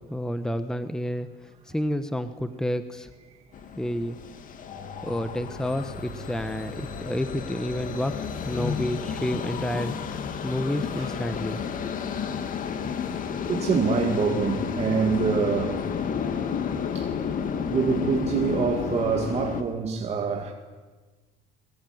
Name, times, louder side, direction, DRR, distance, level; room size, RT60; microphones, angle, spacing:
voice 1, 0.1-1.3 1.7-3.1 3.8-4.2 5.0-8.2 8.4-9.9 10.4-11.9, left 1 dB, 5° left, 1.2 m, -29 dB
sound 1, 3.5-19.6, left 7 dB, 45° left, 2.4 m, -31 dB
voice 2, 13.5-15.9 16.9-17.2 17.7-20.5, right 5 dB, 30° right, 2.2 m, -25 dB
26.5 x 22.0 x 9.5 m
cardioid pair, 125°, 20 cm